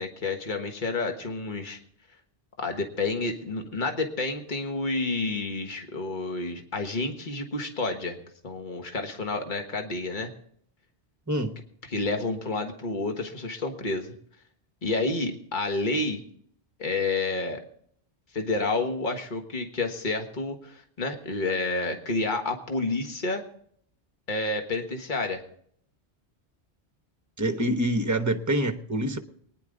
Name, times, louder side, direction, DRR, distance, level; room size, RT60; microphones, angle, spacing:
voice 1, 0.0-1.8 2.6-8.2 8.4-10.3 11.9-14.1 14.8-16.2 16.8-17.6 18.3-23.4 24.3-25.4, left 3 dB, 45° left, 4 dB, 1.6 m, -29 dB
voice 2, 27.4-29.2, right 1 dB, 15° right, 7 dB, 1.0 m, -26 dB
23.0 x 10.0 x 3.9 m, 0.63 s
omnidirectional pair, 1.1 m